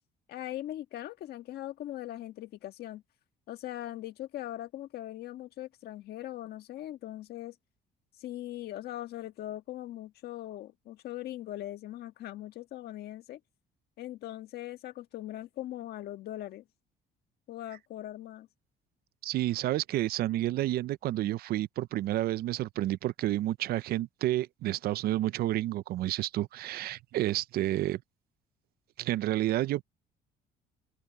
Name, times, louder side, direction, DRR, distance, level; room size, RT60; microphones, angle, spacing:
voice 1, 0.3-3.0 3.5-7.5 8.2-13.4 14.0-16.6 17.5-18.5, left 14 dB, 70° left, 1.5 m, -40 dB
voice 2, 19.2-28.0 29.0-29.8, right 14 dB, 65° right, 0.5 m, -30 dB
open air
cardioid pair, 110°, 17 cm